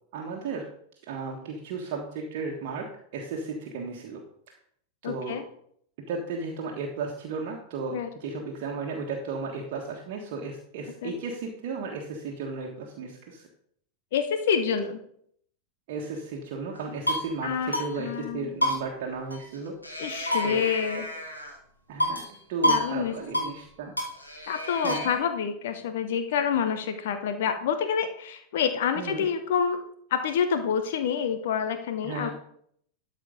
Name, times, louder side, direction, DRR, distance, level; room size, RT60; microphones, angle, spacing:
voice 1, 0.1-0.6 1.1-4.2 5.0-5.4 6.1-13.5 15.9-19.7 20.4-20.6 21.9-22.2 22.5-23.9 24.8-25.2 28.9-29.2 32.0-32.3, right 4 dB, 50° right, 0 dB, 1.5 m, -34 dB
voice 2, 5.0-5.4 7.9-8.1 11.0-11.1 14.1-15.0 17.4-18.5 20.0-21.1 22.7-23.1 24.5-29.8 30.1-32.3, left 7 dB, 55° left, 9 dB, 1.0 m, -27 dB
sound 1, 16.7-17.3 17.7-17.9 18.1-18.2 18.6-19.6 19.8-21.6 22.0-22.3 22.6-22.9 23.1-23.5 24.0-25.2, left 1 dB, 85° left, 2.4 m, -29 dB
12.5 x 5.1 x 5.2 m, 0.66 s
figure-of-eight pair, 90°, 0 cm